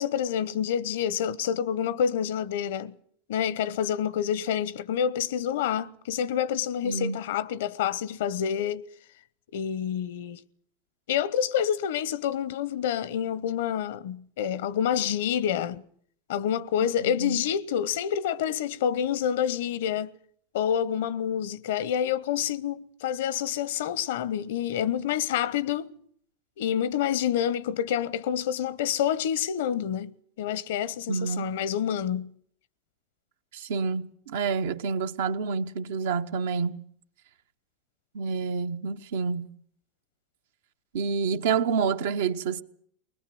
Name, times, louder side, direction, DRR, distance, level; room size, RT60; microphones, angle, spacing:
voice 1, 0.0-2.9 3.3-8.9 9.5-10.4 11.1-15.8 16.3-20.1 20.5-25.9 26.6-30.1 30.4-32.3, left 9 dB, 85° left, 0.8 m, -28 dB
voice 2, 6.8-7.2 17.0-17.4 31.1-31.6 33.5-36.8 38.1-39.5 40.9-42.6, right 5 dB, 85° right, 1.0 m, -28 dB
20.5 x 20.0 x 7.7 m
supercardioid pair, 125°, 0 cm